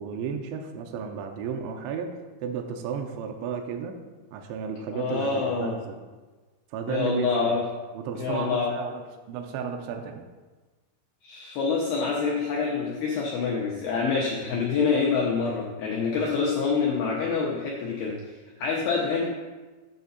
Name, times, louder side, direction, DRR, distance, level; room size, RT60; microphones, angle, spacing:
voice 1, 0.0-4.0 4.3-6.1 6.7-7.6 7.9-9.0 9.3-10.3, right 6 dB, 85° right, 3 dB, 2.7 m, -33 dB
voice 2, 4.9-5.8 6.9-7.6 8.2-8.7 11.2-18.2 18.6-19.3, left 5 dB, 90° left, -2 dB, 2.2 m, -26 dB
9.0 x 6.7 x 4.1 m, 1.3 s
omnidirectional pair, 5.8 m